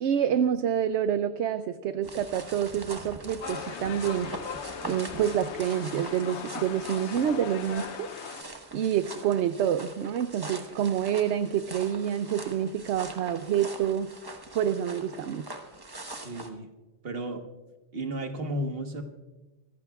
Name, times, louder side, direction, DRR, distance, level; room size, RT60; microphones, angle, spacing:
voice 1, 0.0-4.3 4.9-8.1 8.7-14.1 14.5-15.6, right 9 dB, 75° right, 11 dB, 0.9 m, -27 dB
sound 1, 2.0-16.5, right 2 dB, 20° right, 1.1 m, -43 dB
sound 2, 3.4-8.4, left 7 dB, 75° left, 1.0 m, -39 dB
voice 2, 16.1-16.7 17.0-17.4 17.9-19.0, right 1 dB, 55° right, 5 dB, 1.5 m, -33 dB
25.0 x 15.0 x 2.3 m, 1.1 s
omnidirectional pair, 1.2 m